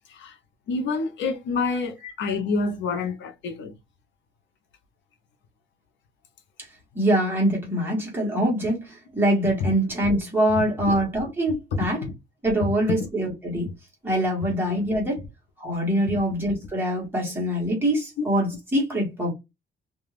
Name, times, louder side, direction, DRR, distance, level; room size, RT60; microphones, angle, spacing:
voice 1, 0.7-3.7 12.0-12.1 14.7-14.8, left 4 dB, 70° left, 0.6 m, -28 dB
voice 2, 6.9-12.0 12.4-13.7 14.0-15.2 15.6-19.3, right 1 dB, 10° right, 1.0 m, -24 dB
2.4 x 2.3 x 3.1 m
cardioid pair, 180°, 20 cm